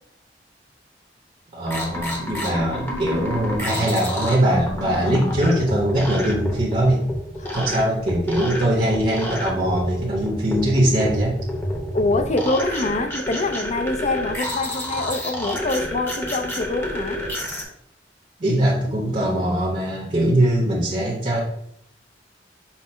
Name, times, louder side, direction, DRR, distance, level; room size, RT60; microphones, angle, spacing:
voice 1, 1.5-7.0 7.5-11.4 18.4-21.4, right 1 dB, 40° right, -3 dB, 0.8 m, -21 dB
sound 1, 1.6-17.6, equal, 15° left, 0.8 m, -29 dB
voice 2, 11.9-17.2, left 2 dB, 40° left, 7 dB, 0.5 m, -25 dB
5.7 x 2.0 x 4.4 m, 0.71 s
head